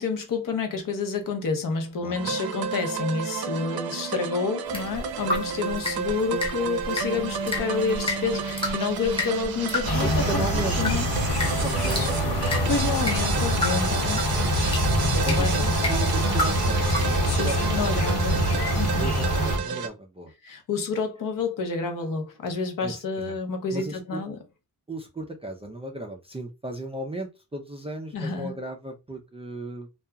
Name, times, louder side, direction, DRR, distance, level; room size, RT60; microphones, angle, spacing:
voice 1, 0.0-11.1 11.8-12.1 12.4-14.8 15.1-15.7 17.3-18.4 18.8-19.1 20.4-24.4 28.1-28.5, left 4 dB, 55° left, 0.7 m, -29 dB
voice 2, 2.0-2.4 9.9-11.0 11.6-12.6 15.2-18.0 18.3-18.4 19.0-20.3 22.8-23.4 23.7-24.2 24.9-29.9, right 1 dB, 15° right, 0.3 m, -36 dB
sound 1, 2.1-19.9, right 6 dB, 70° right, 0.5 m, -31 dB
sound 2, 4.7-17.1, left 2 dB, 15° left, 0.8 m, -34 dB
sound 3, 9.8-19.6, equal, 75° left, 1.1 m, -25 dB
2.8 x 2.3 x 2.2 m
wide cardioid pair, 140°, 39 cm